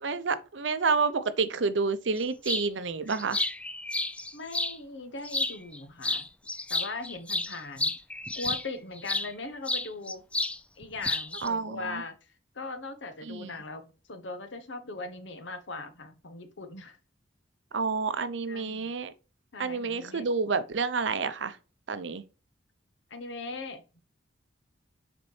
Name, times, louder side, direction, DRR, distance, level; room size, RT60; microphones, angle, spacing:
voice 1, 0.0-3.4 11.4-12.0 13.2-13.5 17.7-19.1 19.6-21.6 21.9-22.2, right 4 dB, 80° right, 0.7 m, -29 dB
sound 1, 2.4-2.7 3.1-4.8 5.2-5.8 6.0-9.3 9.7-10.6 10.8-11.5, left 2 dB, 5° left, 0.3 m, -31 dB
voice 2, 4.3-6.3 6.7-8.0 8.3-10.2 10.8-12.2 12.5-17.0 18.5-18.9 19.5-20.2 23.1-23.8, left 3 dB, 80° left, 1.0 m, -39 dB
6.9 x 4.3 x 3.2 m
head